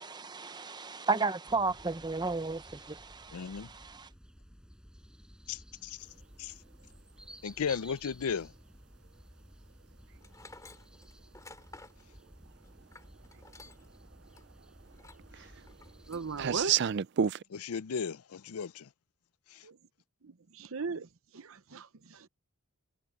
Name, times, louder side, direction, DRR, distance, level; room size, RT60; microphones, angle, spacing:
voice 1, 0.0-4.1, right 4 dB, 20° right, 0.8 m, -33 dB
sound 1, 1.5-16.7, equal, 5° right, 7.6 m, -55 dB
voice 2, 3.3-3.7 5.5-6.1 6.4-6.5 7.4-8.5 17.5-18.9 19.5-19.6, left 6 dB, 85° left, 0.5 m, -35 dB
Tools, 10.2-14.0 14.3-14.4 14.9-15.3 15.7-16.3, left 3 dB, 15° left, 4.5 m, -53 dB
sound 2, 10.8-10.9 12.2-12.3 12.8-12.9 13.2-13.8 14.1-17.4, right 8 dB, 50° right, 0.4 m, -31 dB
voice 3, 16.1-16.8 19.6-19.8 20.2-22.3, right 4 dB, 70° right, 0.8 m, -38 dB
head